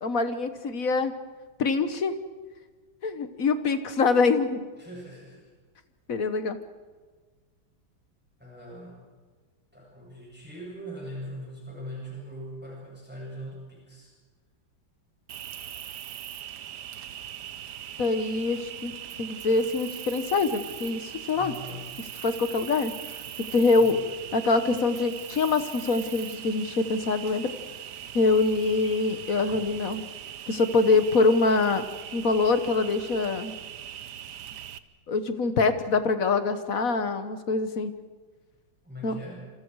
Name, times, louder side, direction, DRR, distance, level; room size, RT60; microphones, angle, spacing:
voice 1, 0.0-1.1 1.6-2.2 3.0-4.6 6.1-6.6 18.0-18.9 19.2-21.5 22.2-22.9 23.5-24.0 24.3-27.5 28.1-30.1 30.5-31.8 32.1-33.5 35.1-37.9 39.0-39.2, left 3 dB, 50° left, 10 dB, 1.5 m, -24 dB
voice 2, 4.8-5.5 8.4-9.0 9.7-14.1 21.3-21.9 23.7-23.9 38.8-39.4, equal, 5° right, -4 dB, 7.9 m, -41 dB
Cricket, 15.3-34.8, right 10 dB, 65° right, 1.3 m, -40 dB
27.5 x 27.0 x 4.8 m, 1.4 s
omnidirectional pair, 2.1 m